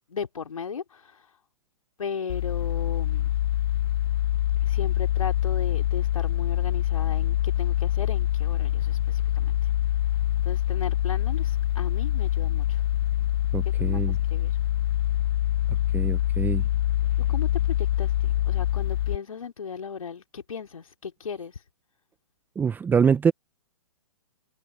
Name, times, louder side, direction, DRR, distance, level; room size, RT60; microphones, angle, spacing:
voice 1, 0.1-1.2 2.0-3.3 4.6-9.5 10.4-12.8 13.8-14.5 17.3-21.6, left 6 dB, 75° left, 3.1 m, -36 dB
sound 1, 2.3-19.2, left 13 dB, 45° left, 0.4 m, -25 dB
voice 2, 13.5-14.2 15.9-16.6 22.6-23.3, right 6 dB, 10° right, 1.0 m, -24 dB
figure-of-eight pair, 125°, 18 cm